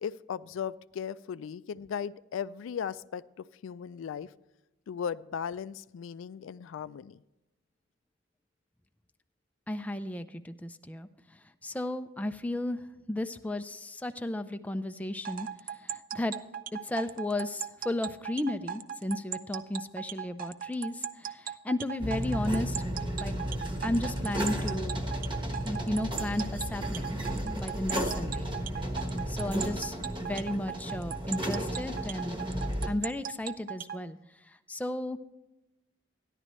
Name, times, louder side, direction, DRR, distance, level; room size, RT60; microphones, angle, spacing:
voice 1, 0.0-4.3 4.9-7.2, left 7 dB, 80° left, 16 dB, 0.3 m, -37 dB
voice 2, 9.7-11.1 11.6-12.8 13.1-15.5 15.8-16.3 16.8-22.8 23.2-23.4 23.8-25.0 25.6-27.2 27.6-28.5 29.3-30.0 30.3-32.4 32.9-34.2 34.7-35.2, left 1 dB, 10° left, 8 dB, 0.4 m, -34 dB
sound 1, 15.2-34.0, right 8 dB, 45° right, 0.5 m, -37 dB
sound 2, 22.0-32.9, equal, 25° right, 1.1 m, -34 dB
14.0 x 11.0 x 3.1 m, 0.97 s
head